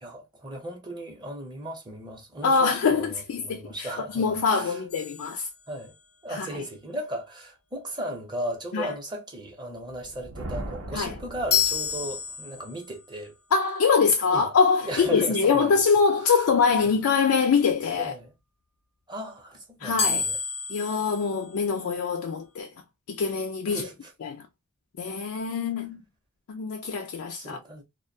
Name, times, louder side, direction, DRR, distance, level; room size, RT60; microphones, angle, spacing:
voice 1, 0.0-4.8 5.7-5.9 6.2-13.3 14.3-14.5 14.8-15.8 16.2-16.4 18.0-18.3 19.1-20.4 23.7-24.1 27.3-27.8, right 1 dB, 20° right, 0.7 m, -36 dB
voice 2, 2.4-5.5 6.3-6.5 8.7-8.9 10.9-11.1 13.5-18.1 19.8-20.3 20.7-22.7 23.1-23.9 24.2-24.4 25.0-26.0 26.5-27.6, left 5 dB, 70° left, 0.3 m, -24 dB
sound 1, 4.9-6.2 11.5-13.0 20.0-22.1, left 7 dB, 85° left, 0.8 m, -30 dB
Thunder, 10.0-12.3, right 1 dB, 70° right, 0.6 m, -39 dB
2.2 x 2.1 x 2.6 m
head